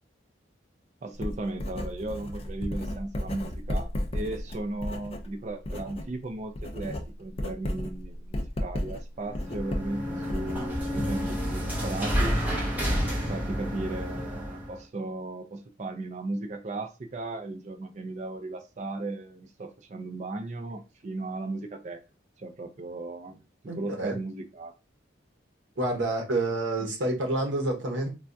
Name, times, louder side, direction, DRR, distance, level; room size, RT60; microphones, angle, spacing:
voice 1, 1.0-12.4 13.3-22.0 22.4-24.7, right 2 dB, 35° right, 0.4 m, -36 dB
Writing, 1.2-6.1 6.4-11.0, left 1 dB, 30° left, 0.4 m, -34 dB
sound 1, 9.3-14.8, equal, 10° right, 0.8 m, -30 dB
voice 2, 23.7-24.2 25.8-28.1, right 2 dB, 75° right, 0.9 m, -28 dB
3.3 x 2.3 x 2.6 m
head